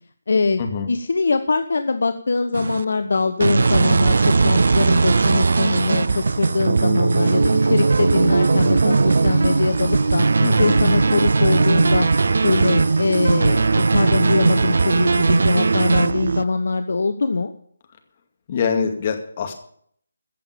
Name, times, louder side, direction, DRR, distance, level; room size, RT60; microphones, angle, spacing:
voice 1, 0.3-10.2 10.6-12.1 12.4-17.5, left 3 dB, 60° left, 9 dB, 1.0 m, -22 dB
sound 1, 2.5-2.8 3.4-16.4, right 4 dB, 55° right, 0.5 m, -18 dB
voice 2, 10.4-10.8 18.5-19.5, left 6 dB, 30° left, 5 dB, 2.2 m, -24 dB
15.5 x 7.0 x 8.9 m, 0.63 s
figure-of-eight pair, 150°, 0 cm